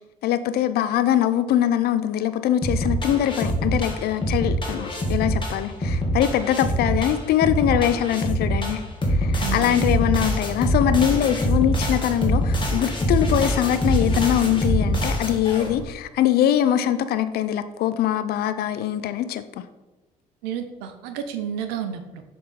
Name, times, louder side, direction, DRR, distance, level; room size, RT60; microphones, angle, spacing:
voice 1, 0.2-8.8 9.1-19.4, left 11 dB, 65° left, 12 dB, 0.5 m, -22 dB
sound 1, 2.6-15.8, equal, 30° left, 1.6 m, -24 dB
voice 2, 9.4-9.9 20.4-22.2, right 8 dB, 80° right, 8 dB, 0.6 m, -31 dB
6.7 x 3.7 x 4.1 m, 1.1 s
hypercardioid pair, 55°, 17 cm